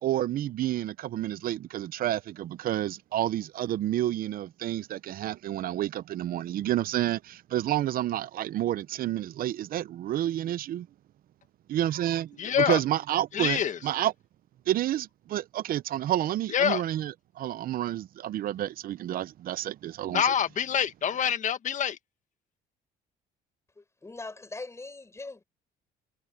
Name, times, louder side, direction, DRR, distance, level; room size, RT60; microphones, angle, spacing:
voice 1, 0.0-10.9 11.7-14.1 14.7-20.2, right 12 dB, 60° right, 0.7 m, -30 dB
voice 2, 12.4-12.8 13.3-13.8 16.5-16.8 20.1-22.0, left 8 dB, 45° left, 1.7 m, -26 dB
voice 3, 23.8-25.4, left 3 dB, 15° left, 6.3 m, -41 dB
cardioid pair, 110°, 17 cm